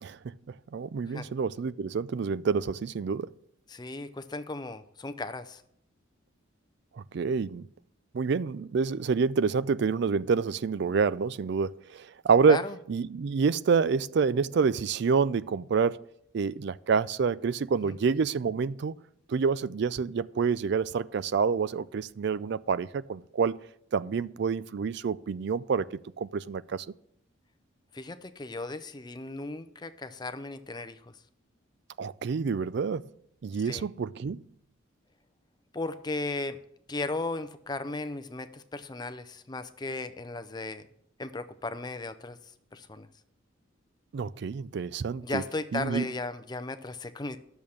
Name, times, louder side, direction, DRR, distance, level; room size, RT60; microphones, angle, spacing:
voice 1, 0.0-3.3 7.0-7.7 8.1-12.6 12.9-16.0 16.3-18.9 19.3-23.6 23.9-26.9 32.0-33.1 33.4-34.4 44.1-45.4 45.7-46.1, right 5 dB, 55° right, 0.3 m, -28 dB
voice 2, 3.7-5.6 12.5-12.7 17.8-17.9 27.9-31.1 33.6-33.9 35.7-36.6 36.9-40.9 41.2-43.1 45.2-47.4, left 2 dB, 20° left, 0.5 m, -36 dB
10.5 x 7.0 x 6.4 m
head